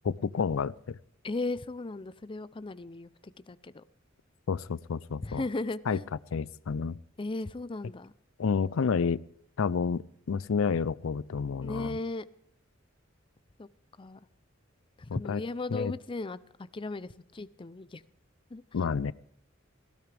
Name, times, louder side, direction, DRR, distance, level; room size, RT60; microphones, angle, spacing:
voice 1, 0.0-1.0 4.5-5.4 5.9-6.0 6.3-7.0 8.4-9.2 9.6-12.0 15.1-15.4 15.7-15.9 18.7-19.1, left 5 dB, 90° left, 20 dB, 0.5 m, -30 dB
voice 2, 1.2-3.8 5.2-6.1 7.2-8.1 11.6-12.3 13.6-13.7 14.0-14.2 15.0-18.0 18.5-18.9, left 2 dB, 25° left, 15 dB, 0.5 m, -36 dB
18.5 x 16.0 x 3.4 m, 0.67 s
head